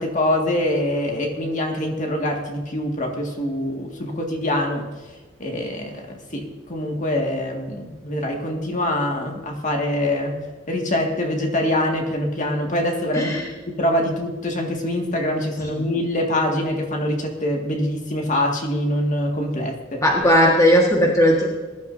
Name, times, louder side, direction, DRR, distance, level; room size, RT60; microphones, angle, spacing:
voice 1, 0.0-4.9 5.4-10.4 10.7-13.4 13.7-20.0, left 1 dB, 40° left, 1 dB, 2.0 m, -24 dB
voice 2, 13.1-13.5 15.6-15.8 20.0-21.5, equal, 15° left, -1 dB, 1.6 m, -17 dB
20.5 x 11.5 x 2.7 m, 1.3 s
head